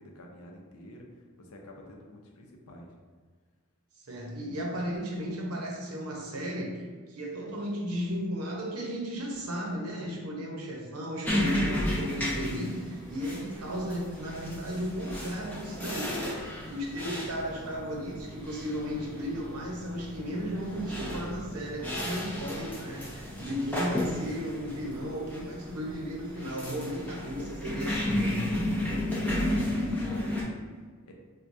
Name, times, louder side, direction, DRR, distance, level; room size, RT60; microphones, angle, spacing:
voice 1, 0.0-3.0 23.2-23.6 28.4-31.1, left 1 dB, 75° left, 0 dB, 0.6 m, -48 dB
voice 2, 4.1-28.5, equal, 80° right, -1 dB, 0.8 m, -35 dB
sound 1, 11.2-30.4, left 1 dB, 5° left, 0.5 m, -33 dB
sound 2, 11.6-26.9, right 1 dB, 35° right, 0.6 m, -49 dB
4.5 x 2.2 x 2.6 m, 1.5 s
head